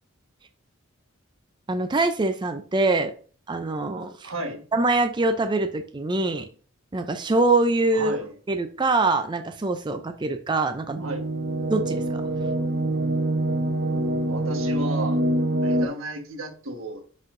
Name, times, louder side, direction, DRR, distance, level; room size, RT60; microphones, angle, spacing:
voice 1, 1.7-3.1 3.5-4.3 4.7-6.5 6.9-8.2 8.5-11.1 11.7-12.2, right 2 dB, 20° right, 7 dB, 0.4 m, -24 dB
voice 2, 4.2-4.6 7.9-8.3 11.0-11.3 14.3-15.2 15.6-17.0, right 2 dB, 90° right, 4 dB, 1.4 m, -33 dB
sound 1, 10.9-15.9, right 1 dB, 50° right, 0.7 m, -25 dB
9.7 x 4.2 x 2.6 m, 0.42 s
head